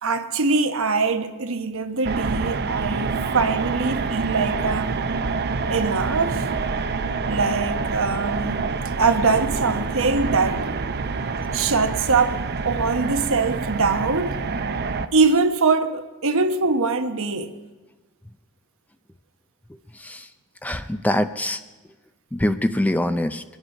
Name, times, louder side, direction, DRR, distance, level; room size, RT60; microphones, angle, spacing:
voice 1, 0.0-5.0 5.7-6.5 7.3-8.6 9.0-10.6 11.5-12.4 12.6-14.4 15.1-17.5, right 4 dB, 65° right, 1.1 m, -22 dB
sound 1, 2.0-15.1, right 4 dB, 50° right, 0.6 m, -27 dB
voice 2, 20.6-21.6 22.3-23.4, left 1 dB, 5° left, 0.4 m, -23 dB
22.5 x 10.5 x 5.4 m
head